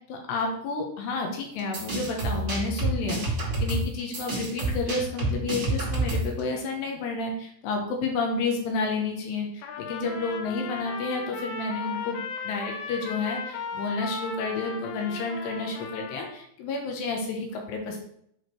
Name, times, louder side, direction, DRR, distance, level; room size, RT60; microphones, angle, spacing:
voice 1, 0.1-3.2 3.6-18.0, left 3 dB, 75° left, 2 dB, 2.9 m, -30 dB
sound 1, 1.6-6.4, right 2 dB, 40° right, 1.4 m, -28 dB
Trumpet, 9.6-16.4, left 5 dB, 90° left, 3.4 m, -36 dB
8.0 x 4.9 x 4.6 m, 0.69 s
omnidirectional pair, 5.6 m